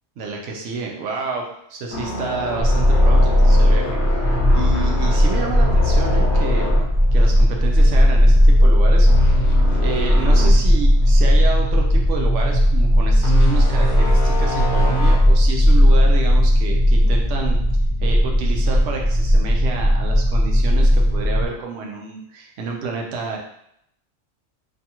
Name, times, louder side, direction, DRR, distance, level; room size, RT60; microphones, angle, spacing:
voice 1, 0.2-4.2 4.5-6.7 7.1-9.4 9.8-17.6 18.0-23.4, right 3 dB, 70° right, 0 dB, 0.9 m, -29 dB
sound 1, 1.9-8.0 8.3-8.5 9.1-10.6 11.0-11.1 13.2-15.2, left 3 dB, 60° left, 1.0 m, -26 dB
sound 2, 2.6-21.5, equal, 35° left, 0.7 m, -16 dB
2.7 x 2.3 x 2.8 m, 0.74 s
omnidirectional pair, 1.3 m